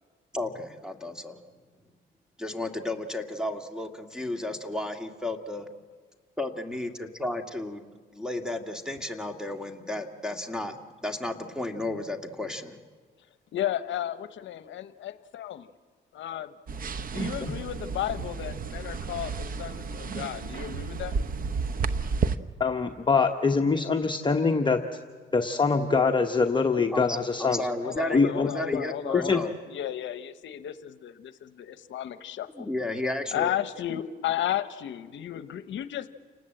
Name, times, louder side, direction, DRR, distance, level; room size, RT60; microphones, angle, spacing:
voice 1, 0.3-1.4 2.4-5.7 6.4-7.9 8.1-12.8 26.8-29.5 32.5-33.5, left 1 dB, 5° right, 6 dB, 1.9 m, -33 dB
voice 2, 13.5-15.7 16.1-16.5 17.1-21.1 27.8-32.7 33.3-36.1, left 11 dB, 70° left, 12 dB, 0.8 m, -33 dB
sound 1, 16.7-22.4, right 5 dB, 45° right, 1.0 m, -32 dB
voice 3, 22.6-25.0 25.3-27.7 28.1-28.5 29.1-29.4, left 4 dB, 25° left, 3 dB, 1.0 m, -24 dB
29.5 x 19.0 x 7.7 m, 1.5 s
cardioid pair, 90°, 20 cm